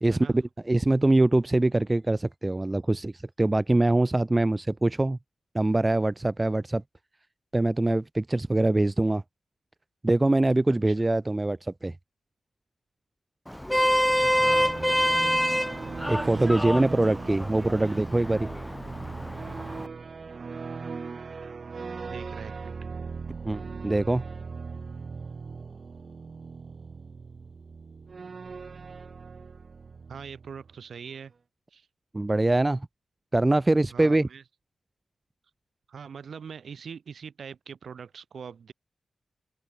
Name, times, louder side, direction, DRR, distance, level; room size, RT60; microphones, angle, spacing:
voice 1, 0.0-3.1 3.4-5.2 5.5-6.8 7.5-9.2 10.0-11.9 16.1-18.5 23.5-24.2 32.1-32.9 33.3-34.3, right 2 dB, 15° right, 0.8 m, -23 dB
Vehicle horn car horn honking, 13.5-19.9, equal, 5° left, 0.5 m, -27 dB
sound 1, 14.1-30.7, right 5 dB, 45° right, 5.8 m, -39 dB
voice 2, 14.1-14.7 22.0-22.7 30.1-31.3 31.7-31.9 33.9-34.4 35.9-38.7, right 6 dB, 65° right, 7.5 m, -42 dB
wide cardioid pair, 145°, 0 cm